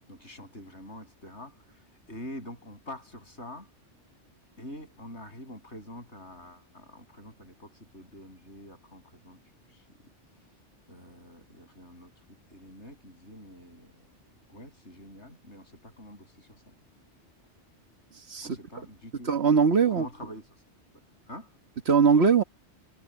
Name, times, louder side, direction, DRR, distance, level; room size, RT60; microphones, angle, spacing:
voice 1, 0.1-3.7 4.6-9.4 9.7-9.8 10.4-10.5 10.9-12.1 12.5-14.1 14.5-16.7 18.4-19.3 19.9-20.5 21.3-21.5, left 1 dB, 70° left, 7.6 m, -46 dB
voice 2, 19.3-20.1 21.9-22.4, right 5 dB, 60° right, 1.6 m, -21 dB
omnidirectional pair, 1.2 m